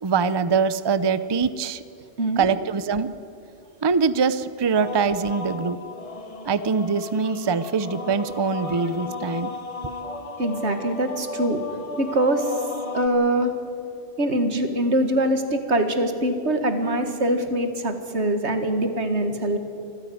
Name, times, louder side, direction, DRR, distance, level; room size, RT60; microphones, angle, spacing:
voice 1, 0.0-1.8 2.4-3.1 3.8-5.8 6.5-9.5, right 5 dB, 30° right, 14 dB, 0.6 m, -23 dB
sound 1, 4.8-13.1, left 3 dB, 35° left, 1.2 m, -35 dB
voice 2, 10.4-11.6 12.0-12.5 12.9-13.5 14.2-19.6, right 1 dB, 85° right, 7 dB, 2.1 m, -23 dB
25.5 x 15.5 x 9.3 m, 2.7 s
omnidirectional pair, 1.1 m